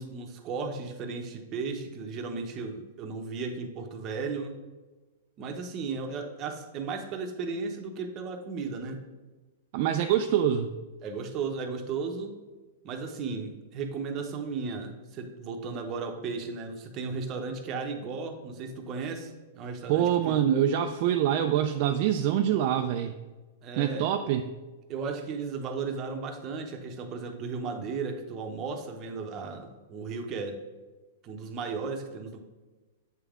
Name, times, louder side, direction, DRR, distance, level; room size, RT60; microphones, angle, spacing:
voice 1, 0.0-4.5 5.4-9.0 11.0-12.3 12.8-20.4 23.6-24.1 24.9-30.6 31.2-32.4, right 4 dB, 30° right, 4 dB, 0.7 m, -35 dB
voice 2, 9.7-10.7 19.9-23.2 23.8-24.4, right 10 dB, 50° right, 5 dB, 0.3 m, -25 dB
8.2 x 3.5 x 3.6 m, 1.2 s
hypercardioid pair, 145°, 0 cm